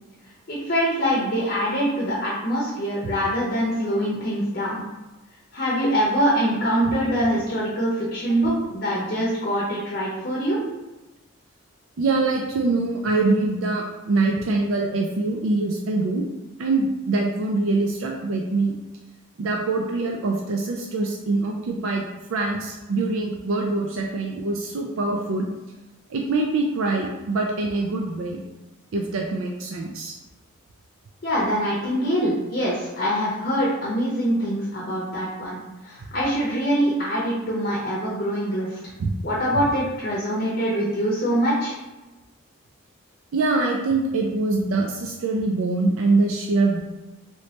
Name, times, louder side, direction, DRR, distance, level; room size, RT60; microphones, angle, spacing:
voice 1, 0.5-4.8 5.5-10.6 31.2-38.8 39.2-41.8, equal, 45° left, -5 dB, 0.6 m, -24 dB
voice 2, 12.0-16.2 16.6-18.7 19.4-22.0 22.3-25.5 26.1-28.4 28.9-30.1 39.0-39.1 39.5-39.7 43.3-46.8, right 3 dB, 70° right, 1 dB, 0.4 m, -24 dB
3.1 x 3.1 x 2.8 m, 1.1 s
head